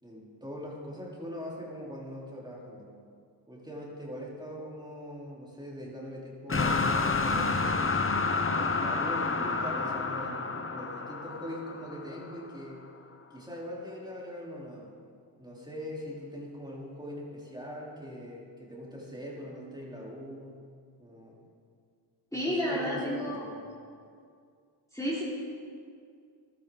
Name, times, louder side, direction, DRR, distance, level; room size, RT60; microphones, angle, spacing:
voice 1, 0.0-2.9 3.5-7.8 8.5-12.8 13.3-14.9 15.4-20.6 21.0-21.4 22.3-23.7, equal, 10° right, -5 dB, 4.0 m, -42 dB
sound 1, 6.5-12.5, left 4 dB, 30° left, 1.0 m, -29 dB
voice 2, 22.3-23.6 24.9-25.2, equal, 5° left, -8 dB, 3.3 m, -31 dB
15.0 x 12.5 x 4.0 m, 2.3 s
cardioid pair, 50°, 45 cm